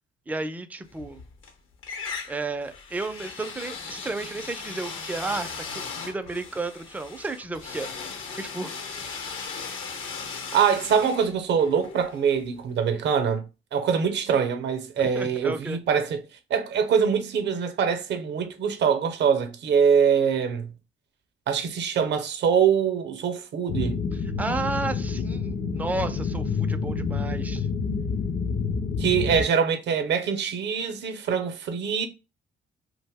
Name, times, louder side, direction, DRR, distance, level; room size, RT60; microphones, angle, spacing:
voice 1, 0.3-1.2 2.3-7.9 8.3-8.7 9.7-9.8 15.0-15.8 24.1-27.7, right 3 dB, 10° right, 0.3 m, -33 dB
sound 1, 0.9-1.5 1.8-12.7, left 5 dB, 80° left, 0.8 m, -38 dB
voice 2, 10.5-13.4 13.7-16.2 16.5-20.7 21.5-24.0 29.0-32.1, right 7 dB, 65° right, 0.6 m, -24 dB
sound 2, 23.7-29.4, left 5 dB, 55° left, 0.5 m, -28 dB
2.5 x 2.1 x 3.4 m
cardioid pair, 90°, 20 cm